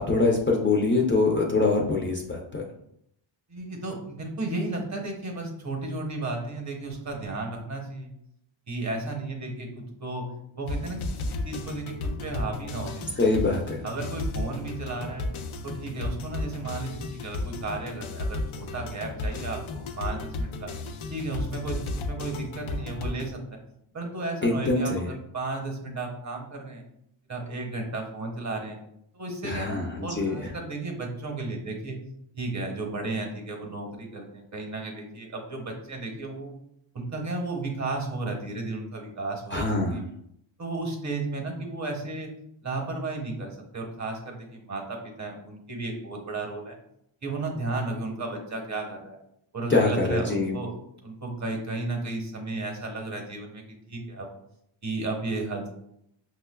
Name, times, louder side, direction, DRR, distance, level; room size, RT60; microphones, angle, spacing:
voice 1, 0.0-2.6 13.2-13.8 24.4-25.1 29.4-30.5 39.5-40.0 49.7-50.6, left 3 dB, 25° left, -1 dB, 0.4 m, -24 dB
voice 2, 3.5-8.1 8.7-10.3 10.5-13.2 13.8-15.3 15.6-20.7 21.1-23.4 23.9-26.8 27.3-28.8 29.1-32.0 32.3-36.5 36.9-40.0 40.6-42.3 42.6-46.8 47.2-49.2 49.5-50.7 51.0-54.3 54.8-55.7, right 2 dB, 35° right, 2 dB, 0.9 m, -34 dB
sound 1, 10.7-23.3, left 2 dB, 80° left, 0.6 m, -34 dB
5.7 x 2.2 x 2.2 m, 0.75 s
cardioid pair, 95°, 48 cm